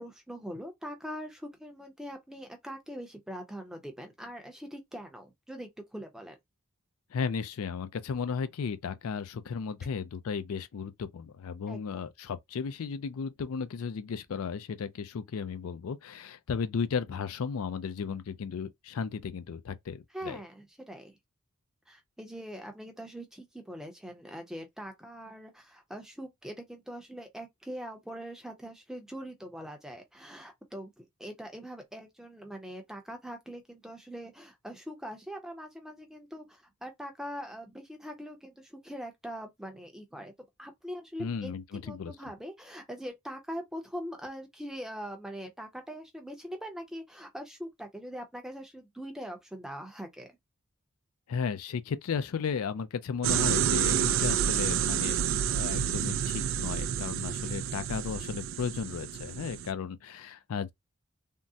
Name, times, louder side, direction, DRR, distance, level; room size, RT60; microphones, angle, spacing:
voice 1, 0.0-6.4 11.7-12.0 20.1-21.1 21.9-40.3 40.6-50.3, equal, ahead, 0.6 m, -42 dB
voice 2, 7.1-20.4 41.2-42.1 51.3-55.2 55.5-60.7, left 6 dB, 70° left, 0.4 m, -35 dB
sound 1, 53.2-59.7, right 9 dB, 60° right, 0.3 m, -29 dB
3.6 x 2.0 x 2.7 m
head